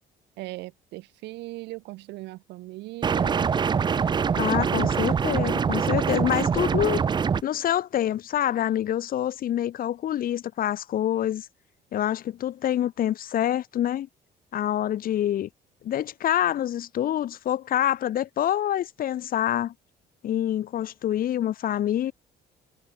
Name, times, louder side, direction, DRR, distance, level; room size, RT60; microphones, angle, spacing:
voice 1, 0.4-3.5, right 20 dB, 85° right, 1.8 m, -38 dB
sound 1, 3.0-7.4, right 6 dB, 25° right, 0.5 m, -24 dB
voice 2, 4.3-7.0 7.4-11.5 11.9-14.1 14.5-15.5 15.8-19.7 20.2-22.1, left 11 dB, 60° left, 1.9 m, -26 dB
cardioid pair, 110°, 17 cm